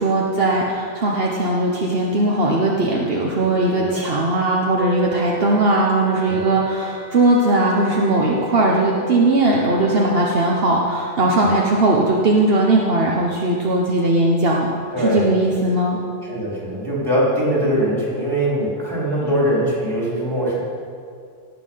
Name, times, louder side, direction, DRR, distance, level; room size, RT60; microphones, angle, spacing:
voice 1, 0.0-14.7 15.0-16.0, right 2 dB, 65° right, -2 dB, 1.4 m, -19 dB
Wind instrument woodwind instrument, 4.8-10.2, left 1 dB, 45° right, 1.2 m, -34 dB
voice 2, 14.9-15.3 16.2-20.6, equal, 20° right, -6 dB, 4.0 m, -22 dB
18.0 x 7.7 x 5.7 m, 2.4 s
omnidirectional pair, 1.1 m